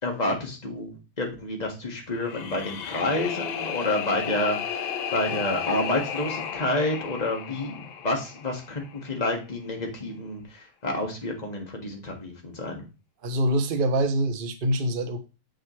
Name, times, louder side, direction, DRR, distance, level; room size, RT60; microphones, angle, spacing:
voice 1, 0.0-12.8, left 2 dB, 20° left, 2 dB, 1.8 m, -29 dB
sound 1, 2.1-9.2, left 8 dB, 70° left, 1.6 m, -34 dB
voice 2, 13.2-15.2, right 1 dB, 90° right, 7 dB, 0.4 m, -25 dB
7.6 x 6.7 x 3.2 m, 0.31 s
omnidirectional pair, 2.4 m